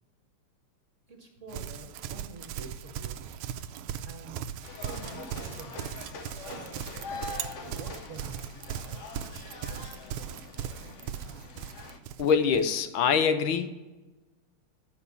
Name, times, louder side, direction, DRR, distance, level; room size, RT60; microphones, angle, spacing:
voice 1, 1.1-3.3 4.0-4.4 4.8-5.8 6.4-6.7 7.6-9.0, right 4 dB, 40° right, 3 dB, 1.3 m, -47 dB
Livestock farm animals working animals, 1.5-12.7, right 9 dB, 80° right, 1.4 m, -38 dB
sound 1, 4.6-12.0, left 4 dB, 60° left, 0.8 m, -43 dB
voice 2, 12.2-13.7, left 6 dB, 75° left, 10 dB, 1.4 m, -24 dB
9.8 x 5.4 x 6.9 m, 1.2 s
omnidirectional pair, 2.3 m